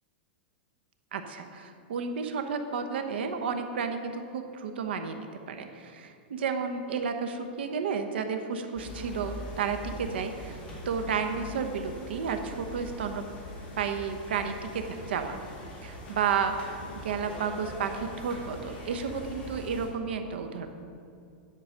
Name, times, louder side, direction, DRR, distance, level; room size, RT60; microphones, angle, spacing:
voice 1, 1.1-10.6 10.8-13.2 13.8-15.4 15.8-16.5 16.9-20.7, right 6 dB, 85° right, 6 dB, 1.0 m, -32 dB
sound 1, 8.7-19.9, equal, 20° left, 2.1 m, -42 dB
10.0 x 4.8 x 6.5 m, 2.6 s
supercardioid pair, 165°, 6 cm